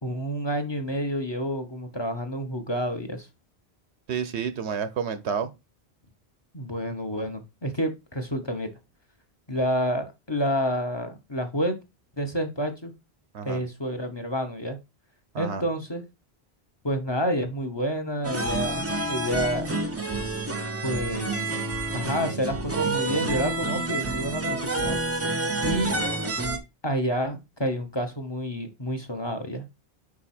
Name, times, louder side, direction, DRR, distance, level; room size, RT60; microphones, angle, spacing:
voice 1, 0.0-3.3 6.5-8.7 9.5-11.8 12.2-12.9 13.4-14.8 15.4-16.0 16.8-19.7 20.8-21.5 21.9-25.0 25.6-25.9 26.8-29.7, equal, 25° left, 0.9 m, -29 dB
voice 2, 4.1-5.5 13.3-13.6 15.3-15.6 25.7-25.8, right 6 dB, 85° right, 1.1 m, -30 dB
Log Cabin, 18.2-26.6, right 2 dB, 15° right, 0.6 m, -28 dB
5.3 x 4.8 x 4.2 m
omnidirectional pair, 1.1 m